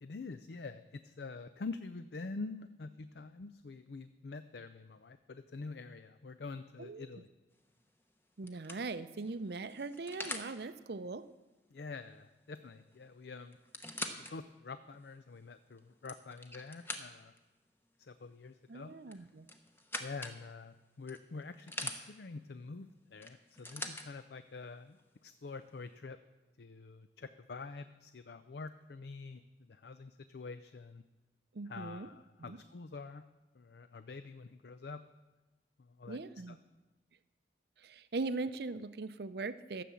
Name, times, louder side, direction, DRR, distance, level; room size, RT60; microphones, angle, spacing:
voice 1, 0.0-7.3 11.7-13.6 14.2-17.3 18.0-19.3 20.0-26.2 26.6-31.0 31.7-33.2 33.5-35.0 35.8-36.2 36.5-36.6, left 4 dB, 65° left, 11 dB, 0.5 m, -46 dB
sound 1, 7.6-7.9 8.5-10.5 12.6-12.7 12.9-13.0 13.5-14.3 14.9-15.0 15.8-17.4 19.1-20.4 21.1-22.0 23.2-24.1 25.0-25.1, left 2 dB, 10° left, 0.8 m, -43 dB
voice 2, 8.4-11.2 18.7-19.5 31.5-32.1 32.5-32.6 36.1-36.6 37.8-39.8, right 3 dB, 65° right, 13 dB, 0.6 m, -40 dB
13.5 x 7.6 x 7.1 m, 1.2 s
head